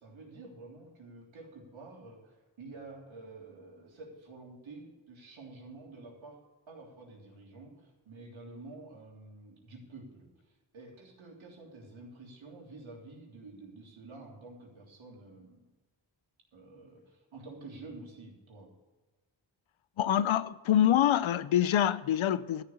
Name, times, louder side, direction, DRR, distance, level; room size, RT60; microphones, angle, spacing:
voice 1, 0.0-15.7 16.5-18.7, right 3 dB, 90° right, 3.4 m, -49 dB
voice 2, 20.0-22.6, left 10 dB, 85° left, 0.6 m, -25 dB
13.0 x 6.7 x 8.5 m
cardioid pair, 70°, 46 cm